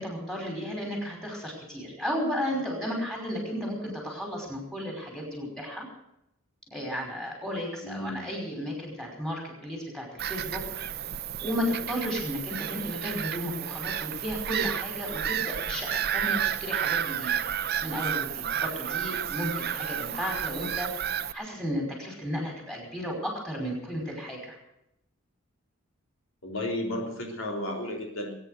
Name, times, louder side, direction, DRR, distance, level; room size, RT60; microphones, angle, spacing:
voice 1, 0.0-5.9 6.7-10.9 11.4-17.4 17.8-24.6, equal, ahead, 0 dB, 5.2 m, -34 dB
voice 2, 7.8-8.3 26.4-28.3, left 1 dB, 70° left, 1 dB, 3.4 m, -33 dB
Bird vocalization bird call bird song / Gull seagull, 10.2-21.3, right 9 dB, 45° right, 0.7 m, -31 dB
21.0 x 9.8 x 6.5 m, 0.81 s
head